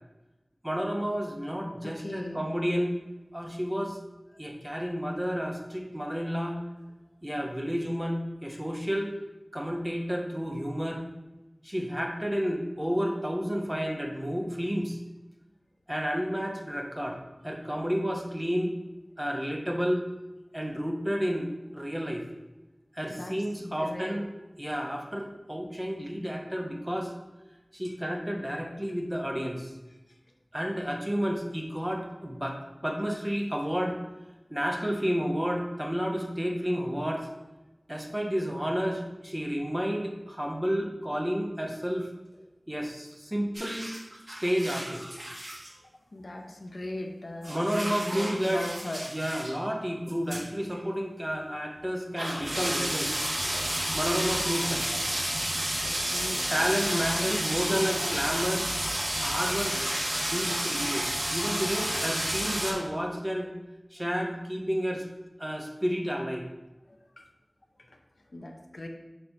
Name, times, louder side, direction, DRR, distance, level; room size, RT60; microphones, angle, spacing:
voice 1, 0.6-2.9 3.3-4.0 4.4-6.6 7.2-9.1 9.5-11.0 11.6-15.0 15.9-17.2 17.4-18.7 19.2-20.0 20.5-21.5 21.7-22.2 22.9-24.3 24.6-27.1 27.7-29.7 30.5-34.0 34.5-37.3 37.9-42.1 42.7-43.9 44.3-45.0 47.5-48.6 49.1-53.2 53.9-54.8 56.5-58.7 59.1-59.8 60.2-63.5 63.9-65.1 65.4-66.5, equal, 15° right, 1 dB, 0.9 m, -31 dB
voice 2, 1.8-2.5 4.3-4.4 23.1-24.2 27.8-27.9 45.8-49.0 55.9-56.5 56.8-57.4 57.7-57.8 66.9-67.2 67.8-68.0 68.3-68.9, left 1 dB, 75° left, 3 dB, 0.7 m, -38 dB
sound 1, 43.5-45.7 47.4-49.5 50.1-50.4 50.7-50.8 51.6-51.7 52.2-62.7, right 1 dB, 45° right, 1.3 m, -31 dB
4.5 x 4.2 x 5.2 m, 1.0 s
wide cardioid pair, 50°, 0 cm